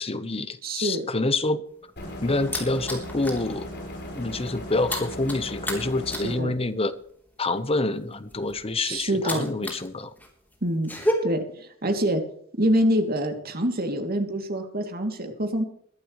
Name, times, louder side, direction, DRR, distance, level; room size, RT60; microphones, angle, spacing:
voice 1, 0.0-1.6 2.2-3.7 4.1-7.0 7.4-10.1, left 2 dB, 30° left, 12 dB, 1.0 m, -27 dB
voice 2, 0.6-1.0 6.1-6.5 8.8-9.5 10.6-10.9 11.2-12.2 12.5-15.6, right 1 dB, 45° right, 5 dB, 2.8 m, -26 dB
sound 1, 1.7-3.5 3.8-4.1 4.3-9.9 10.2-11.1, left 1 dB, 10° left, 3.5 m, -32 dB
sound 2, 2.0-6.4, left 1 dB, 55° left, 6.0 m, -37 dB
21.5 x 12.0 x 3.2 m, 0.63 s
head